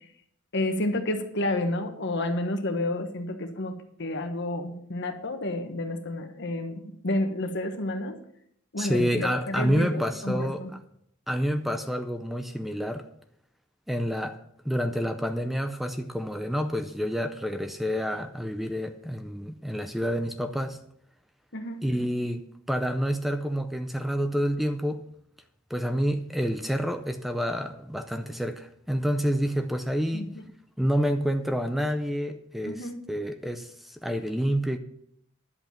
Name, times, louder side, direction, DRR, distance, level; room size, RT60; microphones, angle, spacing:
voice 1, 0.5-8.1 8.7-10.7 21.5-21.8 30.1-30.4 32.7-32.9, left 1 dB, 60° left, 1.3 m, -30 dB
voice 2, 8.8-10.8 11.3-13.1 13.9-14.4 14.6-20.8 21.8-25.1 25.7-30.4 30.8-34.8, equal, ahead, 0.5 m, -28 dB
11.0 x 8.0 x 5.8 m
head